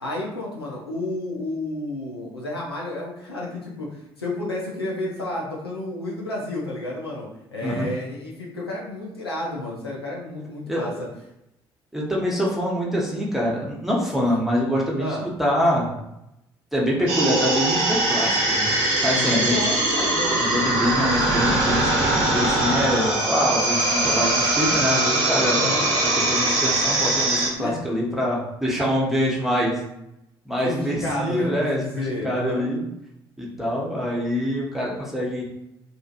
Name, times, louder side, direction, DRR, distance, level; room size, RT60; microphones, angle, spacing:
voice 1, 0.0-11.1 15.0-15.3 19.2-20.9 25.6-25.9 27.3-27.8 30.6-32.7, left 1 dB, 85° left, -4 dB, 0.5 m, -31 dB
voice 2, 10.7-11.0 11.9-16.0 16.7-18.7 19.0-19.6 20.4-25.6 26.3-29.7 30.5-32.8 33.4-35.4, equal, ahead, -4 dB, 0.9 m, -25 dB
sound 1, 17.1-27.5, right 2 dB, 60° right, 0.7 m, -22 dB
2.6 x 2.4 x 2.5 m, 0.86 s
figure-of-eight pair, 45°, 13 cm